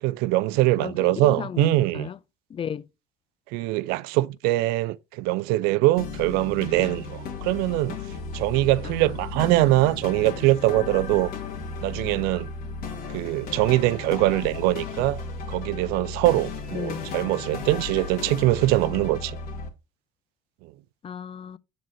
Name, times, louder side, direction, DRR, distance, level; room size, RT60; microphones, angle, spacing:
voice 1, 0.0-2.1 3.5-8.0 8.3-11.3 11.8-12.5 13.1-15.2 15.5-19.4 20.6-20.7, right 18 dB, 80° right, 0.4 m, -23 dB
voice 2, 0.8-2.2 2.5-2.9 8.8-9.2 9.5-9.7 16.7-17.1 21.0-21.6, left 8 dB, 35° left, 0.5 m, -34 dB
sound 1, 6.0-19.7, left 4 dB, 70° left, 2.1 m, -35 dB
7.7 x 3.9 x 4.4 m
supercardioid pair, 80°, 16 cm